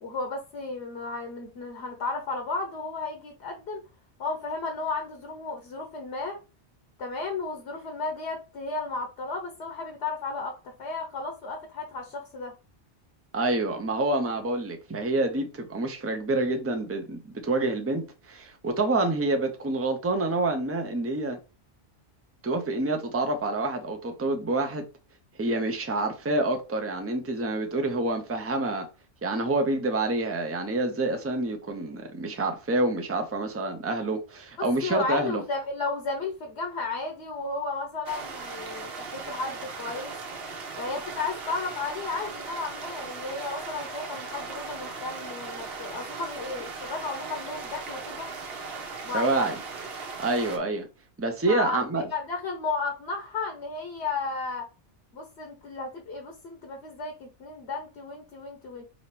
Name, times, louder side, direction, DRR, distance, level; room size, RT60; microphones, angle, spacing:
voice 1, 0.0-3.8 4.2-6.4 7.0-12.6 34.6-40.2 40.8-48.3 49.0-49.6 51.5-54.7 55.1-58.8, left 3 dB, 65° left, 1.2 m, -33 dB
voice 2, 13.3-21.4 22.4-24.8 25.4-28.9 29.2-35.4 49.1-49.5 50.2-50.9 51.2-52.0, right 2 dB, 15° right, 0.5 m, -27 dB
sound 1, 38.1-50.6, right 4 dB, 60° right, 1.0 m, -38 dB
5.0 x 2.9 x 3.1 m
omnidirectional pair, 1.2 m